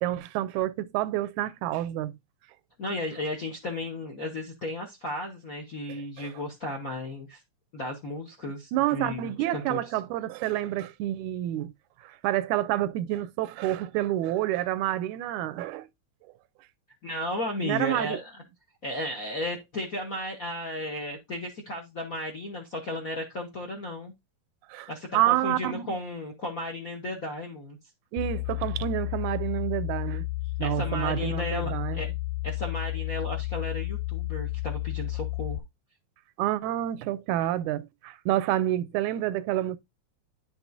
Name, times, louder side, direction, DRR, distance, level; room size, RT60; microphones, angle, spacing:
voice 1, 0.0-2.1 6.2-6.3 8.7-11.7 12.0-15.9 17.6-18.2 24.7-26.0 28.1-30.3 30.6-32.0 36.4-39.8, right 14 dB, 85° right, 2.0 m, -28 dB
voice 2, 2.8-7.4 7.7-9.8 17.0-18.4 18.8-24.1 24.9-27.8 30.6-32.1 32.4-35.6, left 1 dB, 55° left, 0.9 m, -34 dB
sound 1, 28.2-35.6, left 19 dB, 75° left, 1.8 m, -32 dB
10.0 x 6.0 x 2.6 m
omnidirectional pair, 3.4 m